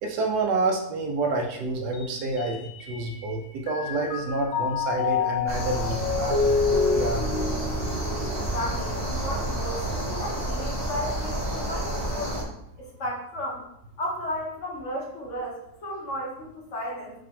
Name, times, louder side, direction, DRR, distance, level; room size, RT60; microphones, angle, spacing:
voice 1, 0.0-7.2, right 2 dB, 80° right, 3 dB, 1.2 m, -28 dB
Mallet percussion, 1.9-3.3 3.7-9.1, left 5 dB, 65° left, 0.7 m, -28 dB
sound 1, 5.5-12.4, right 1 dB, 15° right, 0.8 m, -30 dB
voice 2, 8.5-12.4 12.8-13.6 14.0-17.1, equal, 50° left, -4 dB, 1.4 m, -34 dB
4.9 x 2.8 x 3.7 m, 0.78 s
omnidirectional pair, 1.7 m